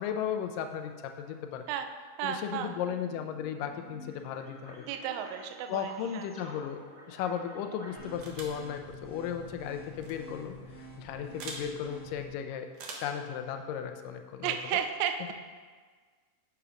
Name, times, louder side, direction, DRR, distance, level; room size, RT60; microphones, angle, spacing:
voice 1, 0.0-1.7 2.2-4.9 5.7-6.8 7.1-10.6 11.0-12.7 13.0-14.6, left 8 dB, 85° left, 6 dB, 2.3 m, -35 dB
voice 2, 2.2-2.7 4.9-6.3 14.4-15.3, right 9 dB, 80° right, 6 dB, 1.7 m, -33 dB
sound 1, 2.6-8.1, equal, 30° right, 2.0 m, -51 dB
sound 2, 8.0-12.3, equal, 45° right, 3.1 m, -48 dB
sound 3, 8.2-8.6 9.9-10.1 11.4-11.7 12.7-13.2, right 3 dB, 60° right, 1.7 m, -42 dB
7.1 x 6.9 x 5.0 m, 1.5 s
omnidirectional pair, 3.8 m